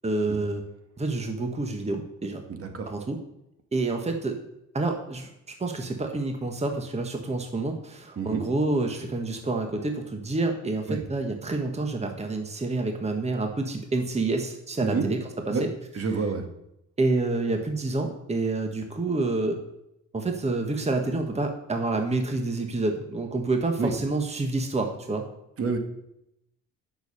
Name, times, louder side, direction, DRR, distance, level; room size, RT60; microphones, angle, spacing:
voice 1, 0.0-0.6 1.0-2.4 2.9-3.2 3.7-4.3 4.7-5.3 5.6-15.2 15.5-15.7 17.0-19.6 20.1-25.3, right 2 dB, 20° right, 4 dB, 1.4 m, -28 dB
voice 2, 2.5-2.9 8.2-8.4 10.9-11.0 14.8-15.1 15.5-15.6 15.9-16.4 23.8-23.9 25.6-25.8, right 4 dB, 50° right, 5 dB, 1.8 m, -28 dB
8.0 x 6.4 x 7.0 m, 0.83 s
cardioid pair, 90°, 30 cm